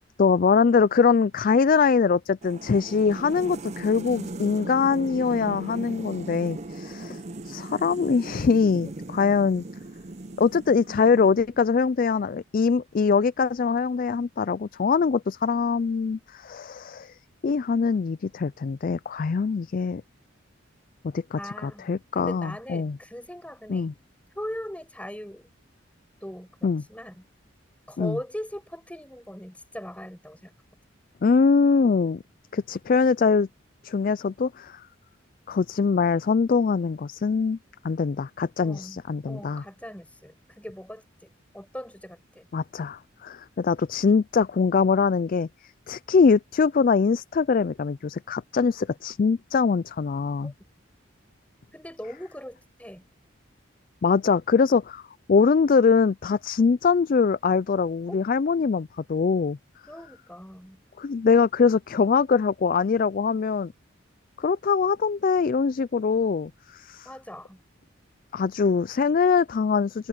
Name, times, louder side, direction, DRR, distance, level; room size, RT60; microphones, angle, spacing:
voice 1, 0.2-9.6 10.4-17.1 17.4-20.0 21.0-23.0 23.7-23.9 26.6-26.8 28.0-28.2 31.2-32.2 32.5-33.5 33.8-34.9 35.5-37.6 37.8-39.6 42.5-45.5 45.9-50.5 54.0-55.0 55.3-59.6 61.0-63.7 64.4-67.1 68.3-70.1, left 5 dB, 45° left, 0.3 m, -23 dB
sound 1, 2.4-11.7, right 2 dB, 35° right, 0.6 m, -38 dB
voice 2, 21.4-21.9 22.1-23.9 24.3-25.5 26.2-27.2 27.9-30.5 38.6-42.5 50.4-50.5 51.7-53.0 58.1-58.2 59.9-60.8 67.0-67.6, equal, 5° left, 6.5 m, -40 dB
head